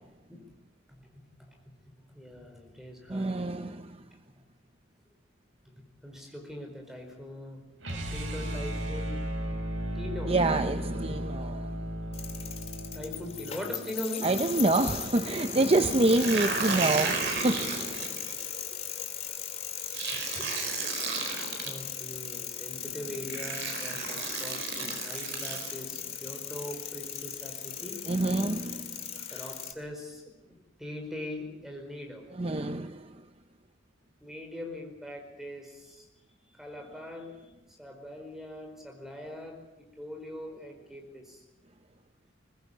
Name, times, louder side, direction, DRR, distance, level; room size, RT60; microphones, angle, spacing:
voice 1, 0.9-1.6 2.1-3.5 5.6-7.6 7.9-9.2 9.9-10.4 11.1-11.2 12.9-14.3 18.6-18.8 20.1-20.5 21.2-28.0 29.3-30.2 30.5-32.3 34.2-36.1 36.5-37.3 37.7-41.4, left 1 dB, ahead, 4.7 m, -42 dB
voice 2, 3.1-3.8 10.3-11.5 14.2-18.0 28.1-28.9 32.4-32.9, right 2 dB, 30° right, 0.7 m, -26 dB
sound 1, 7.8-13.9, equal, 75° right, 4.3 m, -35 dB
sound 2, 12.1-29.7, left 8 dB, 30° left, 2.3 m, -38 dB
sound 3, 15.9-18.4 19.9-21.7 22.7-22.8 23.3-25.7, right 5 dB, 60° right, 4.5 m, -33 dB
22.0 x 20.0 x 8.5 m
head